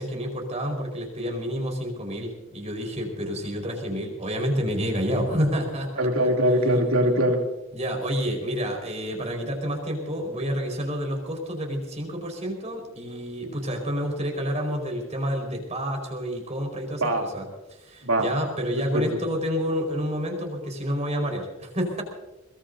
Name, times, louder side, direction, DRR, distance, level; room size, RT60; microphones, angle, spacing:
voice 1, 0.0-6.3 7.7-22.0, equal, 35° right, 2 dB, 5.0 m, -29 dB
voice 2, 6.0-7.4 17.0-17.3 18.0-18.3 18.9-19.0, equal, 85° right, 2 dB, 3.0 m, -21 dB
22.5 x 22.0 x 2.8 m, 1.0 s
head